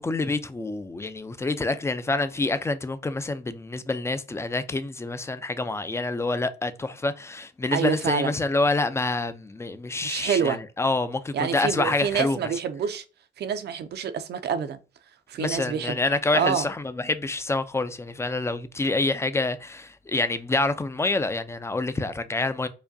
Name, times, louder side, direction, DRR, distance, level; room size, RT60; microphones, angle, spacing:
voice 1, 0.0-12.4 15.4-22.7, left 2 dB, 15° left, 0.4 m, -27 dB
voice 2, 7.7-8.3 10.0-10.6 11.3-13.0 13.4-14.8 15.3-16.0 16.3-16.6, right 7 dB, 55° right, 0.5 m, -27 dB
4.8 x 2.2 x 2.6 m
cardioid pair, 90°, 20 cm